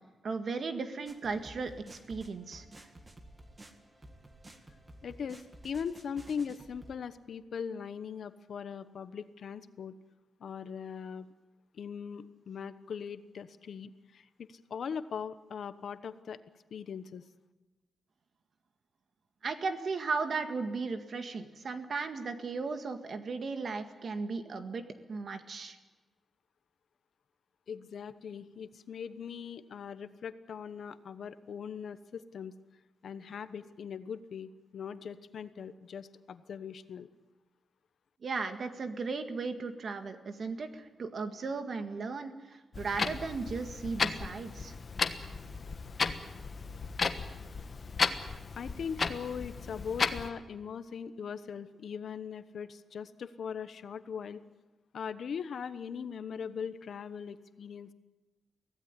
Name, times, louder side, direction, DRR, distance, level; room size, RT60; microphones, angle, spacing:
voice 1, 0.2-2.9 19.4-25.8 38.2-44.8, right 4 dB, 50° right, 8 dB, 1.9 m, -36 dB
sound 1, 1.1-6.9, right 1 dB, 20° right, 2.0 m, -53 dB
voice 2, 5.0-9.9 10.4-11.3 11.7-16.4 16.7-17.2 27.7-32.5 33.0-37.1 48.6-54.4 54.9-57.9, left 7 dB, 65° left, 12 dB, 1.1 m, -40 dB
Clock, 42.7-50.3, left 4 dB, 35° left, 1.3 m, -34 dB
24.0 x 16.5 x 9.8 m, 1.2 s
wide cardioid pair, 160°, 0 cm